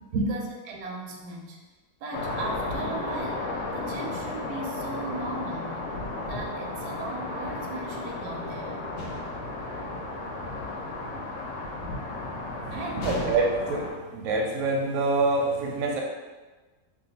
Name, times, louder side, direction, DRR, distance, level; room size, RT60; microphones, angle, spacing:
voice 1, 0.1-1.6 2.0-3.5 3.7-5.9 6.3-8.8 12.7-13.3, right 2 dB, 85° right, 0 dB, 1.2 m, -37 dB
sound 1, 2.1-13.9, left 2 dB, 65° left, 0.8 m, -34 dB
sound 2, 9.0-9.5 13.0-13.8, left 3 dB, 80° left, 0.5 m, -36 dB
voice 2, 12.5-16.0, right 3 dB, 65° right, -1 dB, 0.8 m, -26 dB
2.6 x 2.2 x 4.1 m, 1.3 s
omnidirectional pair, 1.7 m